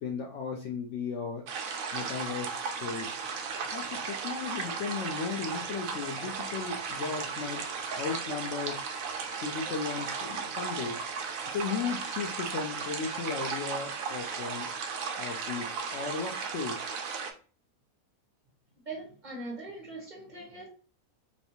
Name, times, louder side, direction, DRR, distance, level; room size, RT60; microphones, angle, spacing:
voice 1, 0.0-1.5 1.9-3.2 3.7-7.6 8.0-9.0 9.4-11.0 11.5-14.7 15.2-16.9, left 5 dB, 65° left, 0.7 m, -36 dB
sound 1, 1.5-17.3, right 5 dB, 70° right, 1.0 m, -35 dB
voice 2, 18.8-20.7, right 2 dB, 35° right, 1.1 m, -41 dB
3.2 x 2.6 x 2.8 m
omnidirectional pair, 1.6 m